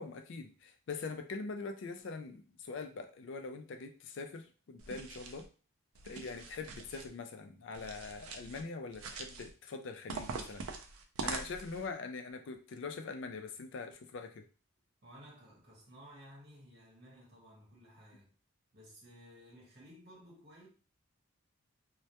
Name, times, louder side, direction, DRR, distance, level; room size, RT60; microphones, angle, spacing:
voice 1, 0.0-5.5 6.0-10.7 11.2-14.5, left 4 dB, 60° left, 0.3 m, -43 dB
sound 1, 4.8-5.5 5.9-7.1 7.7-8.6 8.9-9.5 10.1-11.9, right 4 dB, 90° right, 0.4 m, -43 dB
voice 2, 15.0-18.3 18.7-20.7, equal, 50° right, 1.0 m, -56 dB
2.1 x 2.1 x 2.7 m
head